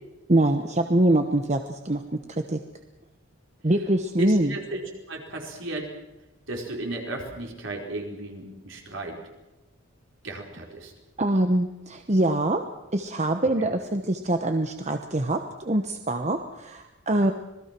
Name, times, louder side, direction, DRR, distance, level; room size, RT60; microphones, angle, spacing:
voice 1, 0.3-2.0 2.3-2.6 3.6-4.5 11.2-12.6 12.9-17.3, right 1 dB, 35° right, 6 dB, 1.1 m, -24 dB
voice 2, 4.2-4.8 5.1-5.9 6.5-9.2 10.2-10.9 13.4-13.5, right 2 dB, 65° right, 1 dB, 4.7 m, -34 dB
26.5 x 20.0 x 6.1 m, 1.0 s
head